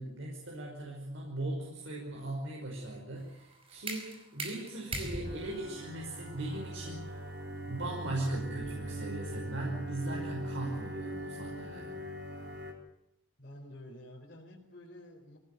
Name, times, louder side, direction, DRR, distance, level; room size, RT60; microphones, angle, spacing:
voice 1, 0.0-7.2 7.7-12.0, right 1 dB, 75° right, -1 dB, 5.5 m, -39 dB
sound 1, 3.2-8.9, right 2 dB, 30° right, 5.0 m, -43 dB
sound 2, 5.2-12.7, right 1 dB, 55° right, 4.6 m, -41 dB
voice 2, 13.4-15.4, left 1 dB, 45° left, -4 dB, 4.5 m, -50 dB
23.5 x 18.0 x 9.4 m, 0.83 s
head